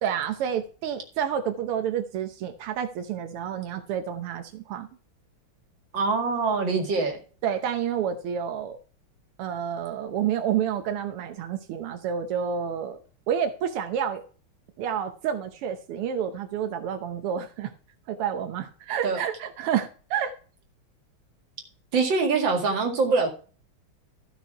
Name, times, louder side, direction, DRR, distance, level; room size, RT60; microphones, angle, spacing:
voice 1, 0.0-4.9 7.4-8.8 9.4-13.0 13.3-14.2 14.8-17.7 18.1-20.3, right 8 dB, 90° right, 7 dB, 1.9 m, -29 dB
voice 2, 5.9-7.2 19.0-19.2 21.9-23.3, right 4 dB, 55° right, 3 dB, 2.8 m, -24 dB
13.5 x 6.1 x 4.6 m, 0.39 s
omnidirectional pair, 2.4 m